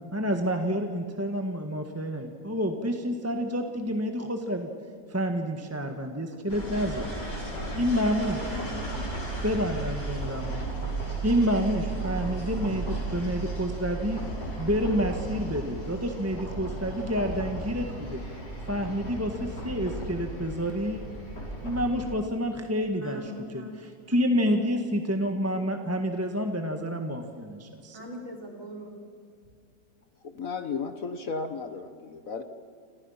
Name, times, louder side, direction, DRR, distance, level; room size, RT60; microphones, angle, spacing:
voice 1, 0.1-4.7 5.1-7.1 7.7-8.5 9.4-10.6 11.2-14.2 14.6-18.2 18.7-21.0 21.6-23.6 24.1-28.0, equal, 10° right, 4 dB, 1.5 m, -28 dB
sound 1, 6.5-22.2, right 2 dB, 75° left, 6.4 m, -35 dB
voice 2, 8.0-9.1 22.9-23.8 27.9-29.0, equal, 45° right, -1 dB, 5.3 m, -42 dB
voice 3, 30.2-32.4, left 4 dB, 55° left, 9 dB, 1.5 m, -34 dB
29.5 x 27.0 x 5.8 m, 2.3 s
omnidirectional pair, 1.9 m